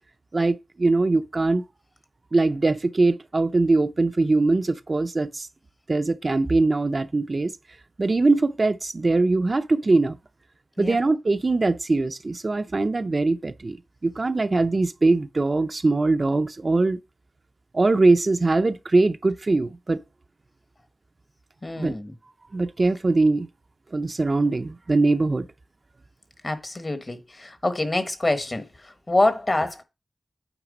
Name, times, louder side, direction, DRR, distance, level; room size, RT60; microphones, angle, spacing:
voice 1, 0.3-1.6 2.3-5.5 5.9-7.5 8.0-10.2 10.8-13.8 14.0-17.0 17.7-20.0 21.8-21.9 22.5-23.5 23.9-25.4, right 3 dB, 45° right, 0.5 m, -22 dB
voice 2, 21.6-22.1 26.4-29.8, left 2 dB, 35° left, 1.2 m, -26 dB
9.0 x 3.3 x 5.1 m
wide cardioid pair, 90°, 0 cm